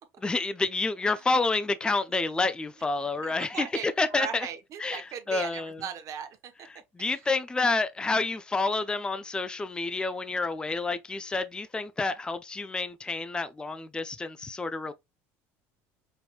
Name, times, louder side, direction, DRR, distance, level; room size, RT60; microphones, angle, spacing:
voice 1, 0.2-4.5 4.8-5.8 7.0-14.9, left 3 dB, 10° left, 0.5 m, -29 dB
voice 2, 3.2-6.5 7.1-7.2, right 9 dB, 50° right, 1.1 m, -38 dB
5.2 x 3.0 x 2.4 m
supercardioid pair, 100°, 7 cm